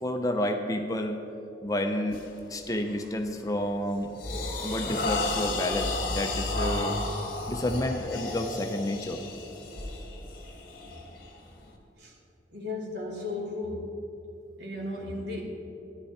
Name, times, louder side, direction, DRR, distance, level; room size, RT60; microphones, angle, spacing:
voice 1, 0.0-1.2 1.6-2.2 2.5-4.1 4.6-7.0 7.5-9.3, left 1 dB, 20° left, 5 dB, 0.6 m, -30 dB
sound 1, 2.1-2.4 2.8-3.1 3.6-11.7, left 2 dB, 55° left, 1.6 m, -33 dB
voice 2, 12.5-13.9 14.6-15.4, left 2 dB, 75° right, -3 dB, 2.4 m, -35 dB
13.5 x 10.0 x 4.3 m, 2.6 s
head